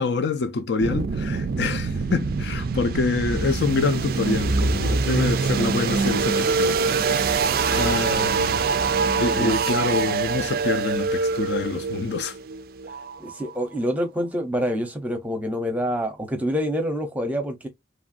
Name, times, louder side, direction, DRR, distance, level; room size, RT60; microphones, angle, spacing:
voice 1, 0.0-7.2 7.7-8.6 9.2-12.4, left 4 dB, 60° left, 0.4 m, -26 dB
sound 1, 0.8-13.6, right 4 dB, 50° right, 0.3 m, -24 dB
voice 2, 13.2-17.7, equal, 10° right, 0.7 m, -26 dB
3.1 x 2.4 x 2.5 m
head